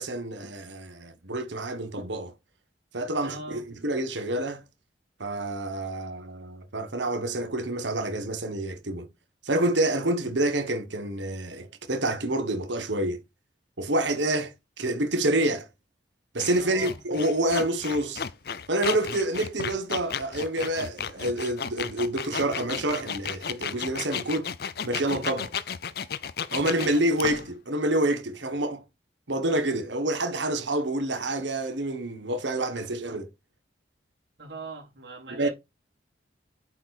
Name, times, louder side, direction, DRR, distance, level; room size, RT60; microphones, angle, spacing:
voice 1, 0.0-2.3 2.9-4.6 5.2-9.1 9.4-13.2 13.8-15.7 16.3-18.2 18.7-24.5 24.8-25.5 26.5-28.8 29.3-33.3 35.4-35.5, right 1 dB, 80° right, 1.5 m, -28 dB
voice 2, 3.2-3.6 16.6-17.0 34.4-35.5, right 3 dB, 65° right, 3.9 m, -40 dB
sound 1, 16.4-27.5, left 7 dB, 55° left, 0.5 m, -34 dB
8.5 x 4.5 x 4.3 m
head